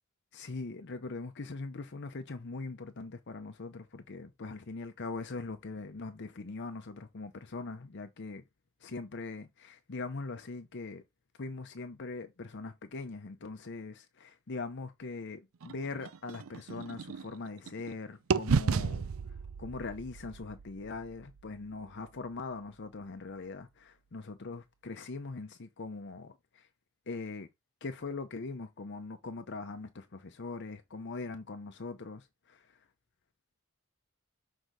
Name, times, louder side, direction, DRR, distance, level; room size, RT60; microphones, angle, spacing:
voice 1, 0.3-8.4 8.8-11.0 11.4-26.7 27.1-27.5 27.8-32.9, left 3 dB, 55° left, 0.7 m, -41 dB
sound 1, 15.6-17.9 18.3-22.3, right 5 dB, 70° right, 0.5 m, -34 dB
6.5 x 4.6 x 3.9 m
head